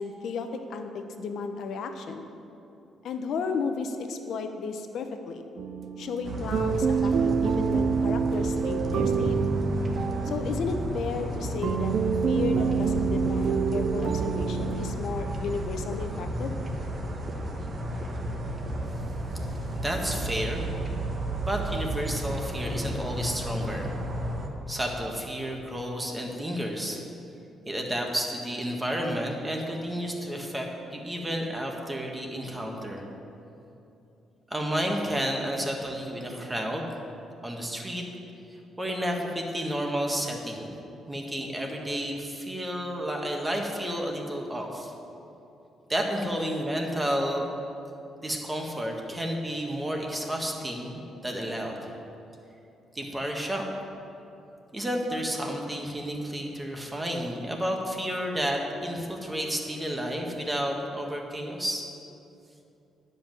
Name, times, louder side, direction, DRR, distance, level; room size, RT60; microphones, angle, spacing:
voice 1, 0.0-2.3 3.0-5.5 6.0-9.4 10.2-11.9 12.3-16.6, left 5 dB, 70° left, 6 dB, 0.8 m, -33 dB
sound 1, 5.6-14.9, right 6 dB, 60° right, 0.4 m, -27 dB
sound 2, 6.2-24.5, right 1 dB, 40° right, 1.3 m, -33 dB
voice 2, 19.8-20.7 21.4-23.9 24.7-27.0 27.6-33.0 34.5-36.9 37.4-38.0 38.5-40.7 41.1-44.9 45.9-47.5 48.2-51.9 52.9-53.7 54.7-61.9, equal, 15° right, 1 dB, 1.5 m, -31 dB
10.0 x 5.5 x 7.6 m, 2.8 s
cardioid pair, 90°, 0 cm